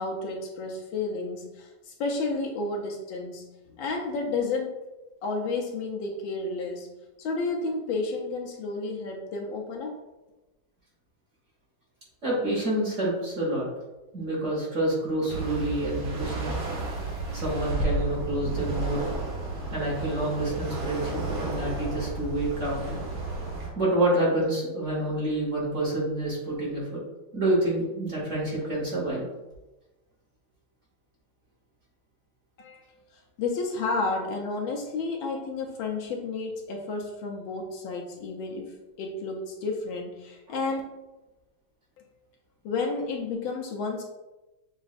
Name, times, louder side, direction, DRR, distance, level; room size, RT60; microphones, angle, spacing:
voice 1, 0.0-4.8 5.2-6.9 7.2-10.0 32.6-32.8 33.1-40.8 42.0-42.1 42.6-44.0, left 3 dB, 75° left, 1 dB, 1.3 m, -31 dB
voice 2, 12.2-13.7 14.1-16.5 17.3-19.1 19.4-19.5 19.7-23.0 23.8-27.0 27.3-29.2, right 1 dB, 45° right, -5 dB, 1.3 m, -28 dB
sound 1, 15.3-23.7, right 2 dB, 75° right, 1.9 m, -32 dB
7.0 x 2.4 x 2.4 m, 1.1 s
omnidirectional pair, 2.3 m